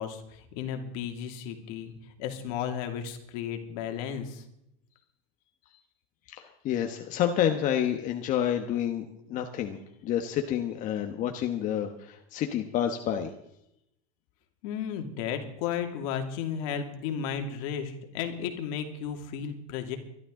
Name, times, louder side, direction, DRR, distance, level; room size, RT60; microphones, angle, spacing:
voice 1, 0.0-1.9 2.2-4.4 14.6-20.0, left 8 dB, 65° left, 5 dB, 2.5 m, -34 dB
voice 2, 6.3-13.3, left 10 dB, 40° left, 5 dB, 1.3 m, -29 dB
23.5 x 12.0 x 3.8 m, 0.81 s
supercardioid pair, 135°, 19 cm